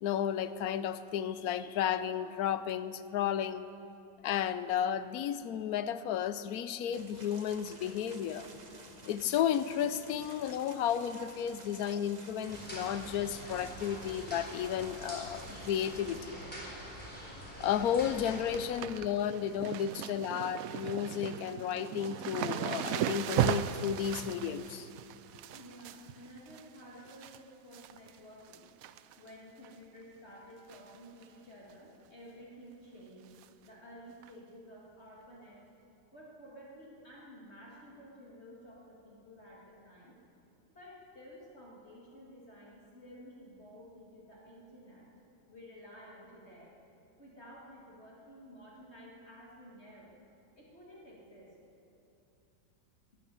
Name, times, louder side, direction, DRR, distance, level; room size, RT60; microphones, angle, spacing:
voice 1, 0.0-3.7 4.2-8.5 9.0-16.4 17.6-24.9, left 9 dB, 70° left, 13 dB, 1.0 m, -33 dB
sound 1, 6.9-16.2, right 3 dB, 30° right, 1.1 m, -52 dB
sound 2, 12.5-18.7, equal, 5° left, 3.7 m, -45 dB
sound 3, 17.6-17.9 18.2-27.4 27.7-28.2 28.5-29.3 29.6-29.7 30.7-31.0 31.2-31.3 31.7-31.8 33.4-33.5 34.2-34.3, right 10 dB, 70° right, 0.8 m, -37 dB
voice 2, 25.5-28.7 29.2-35.6 36.1-40.2 40.7-45.1 45.5-46.7 47.2-50.2 50.5-51.5, equal, 35° left, -5 dB, 2.4 m, -53 dB
19.0 x 11.0 x 7.0 m, 2.7 s
omnidirectional pair, 1.9 m